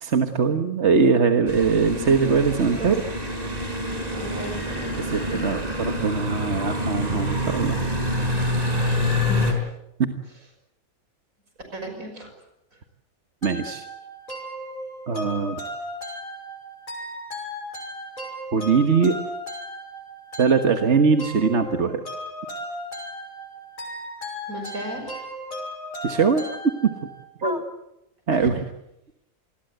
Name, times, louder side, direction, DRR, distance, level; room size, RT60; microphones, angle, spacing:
voice 1, 0.0-2.9 5.0-7.9 10.0-10.1 13.4-13.8 15.1-15.6 18.5-19.2 20.4-22.0 26.0-26.4 26.8-26.9 27.4-27.7 28.3-28.6, right 5 dB, 50° right, 6 dB, 1.6 m, -21 dB
sound 1, 1.5-9.5, left 1 dB, 25° right, 4.4 m, -26 dB
voice 2, 1.9-2.9 4.1-5.5 8.8-9.6 11.7-12.3 24.5-25.2 28.3-28.5, right 1 dB, 70° right, 5 dB, 6.5 m, -36 dB
sound 2, 13.4-27.2, equal, 70° left, 6.7 m, -36 dB
28.0 x 21.0 x 8.0 m, 0.84 s
omnidirectional pair, 1.5 m